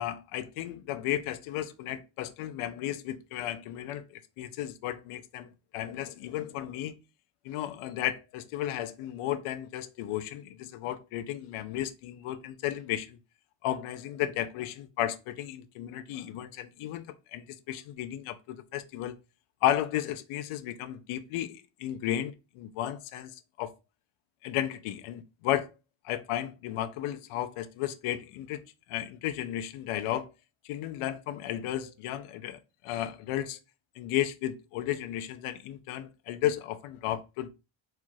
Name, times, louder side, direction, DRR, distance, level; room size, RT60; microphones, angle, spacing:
voice 1, 0.0-7.0 7.4-13.2 13.6-19.2 19.6-23.7 24.4-25.7 26.0-30.3 30.6-33.6 34.0-37.5, left 12 dB, 80° left, 0.7 m, -34 dB
4.4 x 2.4 x 4.5 m
cardioid pair, 175°, 49 cm